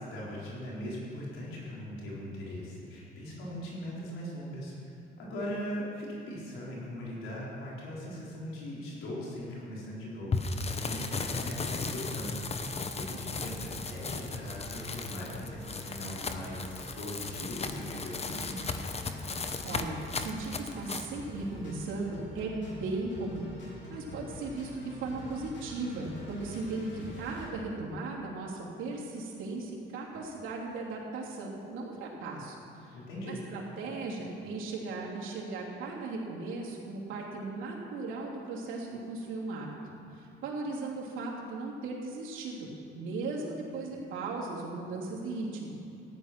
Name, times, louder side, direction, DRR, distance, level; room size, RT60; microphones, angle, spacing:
voice 1, 0.0-12.7 13.0-18.7 32.9-33.4, equal, 90° left, -5 dB, 4.2 m, -40 dB
sound 1, 10.3-21.1, left 4 dB, 30° left, 1.0 m, -36 dB
sound 2, 12.6-27.5, left 1 dB, 65° left, 3.6 m, -46 dB
voice 2, 19.6-23.5 23.9-39.7 40.1-42.7 42.9-45.7, right 3 dB, 85° right, -4 dB, 3.0 m, -37 dB
14.5 x 10.5 x 6.0 m, 2.7 s
cardioid pair, 90°, 20 cm